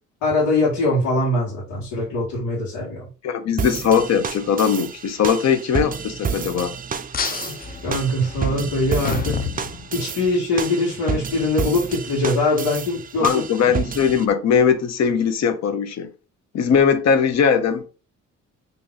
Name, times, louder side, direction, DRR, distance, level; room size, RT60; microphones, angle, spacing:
voice 1, 0.2-3.1 7.3-7.5 7.8-9.4 9.9-13.4, left 2 dB, 90° left, 1.6 m, -22 dB
voice 2, 3.2-6.8 13.2-16.1 16.5-17.9, left 7 dB, 60° left, 0.8 m, -20 dB
sound 1, 3.6-14.2, right 6 dB, 30° right, 0.4 m, -30 dB
sound 2, 7.1-10.3, left 6 dB, 30° left, 0.5 m, -29 dB
2.8 x 2.6 x 3.9 m
cardioid pair, 90°, 30 cm